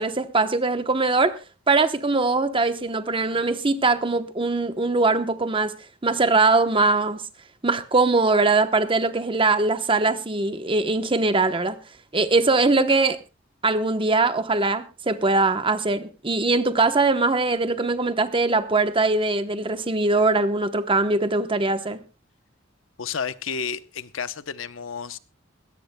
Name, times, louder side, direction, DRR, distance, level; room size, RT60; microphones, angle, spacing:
voice 1, 0.0-1.4 1.7-5.7 6.0-7.2 7.6-11.8 12.1-13.2 13.6-22.0, right 3 dB, 25° right, 0.9 m, -21 dB
voice 2, 23.0-25.2, left 6 dB, 85° left, 0.8 m, -31 dB
21.5 x 17.0 x 2.2 m
head